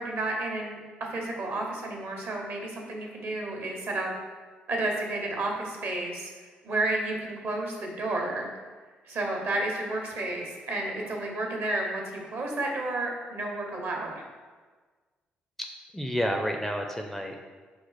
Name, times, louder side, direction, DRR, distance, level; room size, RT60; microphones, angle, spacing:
voice 1, 0.0-4.1 4.7-8.5 9.0-14.1, right 2 dB, 50° right, 0 dB, 1.0 m, -31 dB
voice 2, 15.6-17.4, equal, 5° left, 3 dB, 0.4 m, -30 dB
5.2 x 2.4 x 4.0 m, 1.4 s
figure-of-eight pair, 45°, 5 cm